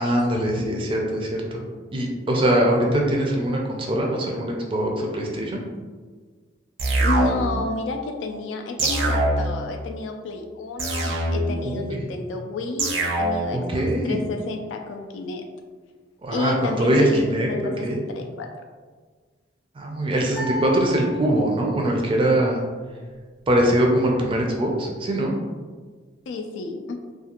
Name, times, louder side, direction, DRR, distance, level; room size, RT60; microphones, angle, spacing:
voice 1, 0.0-1.6 1.9-5.6 11.6-12.1 13.5-14.2 16.2-17.5 17.8-18.0 19.7-22.6 23.5-25.3, right 1 dB, 30° right, 0 dB, 0.4 m, -22 dB
sound 1, 6.8-7.7 8.8-9.7 10.8-11.7 12.8-13.7, right 2 dB, 75° right, 0.5 m, -23 dB
voice 2, 7.0-13.6 14.0-15.4 16.3-18.5 26.3-26.9, left 3 dB, 75° left, 5 dB, 0.3 m, -30 dB
sound 2, 20.3-21.8, left 2 dB, 25° left, 0.6 m, -33 dB
2.4 x 2.4 x 2.9 m, 1.5 s
head